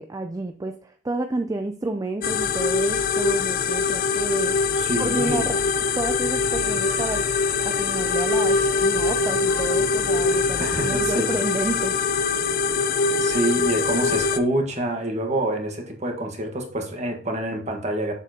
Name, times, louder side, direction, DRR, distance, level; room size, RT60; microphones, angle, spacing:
voice 1, 0.0-4.7 5.0-5.6 5.9-7.2 7.6-12.2, right 2 dB, 20° right, 6 dB, 0.4 m, -30 dB
sound 1, 2.2-14.4, left 5 dB, 50° left, 0.5 m, -23 dB
voice 2, 4.7-5.5 10.6-11.3 13.2-18.1, right 1 dB, 40° right, 2 dB, 1.5 m, -26 dB
Harmonica, 6.6-10.8, right 2 dB, 90° right, 1.7 m, -40 dB
7.2 x 6.7 x 2.9 m, 0.43 s
head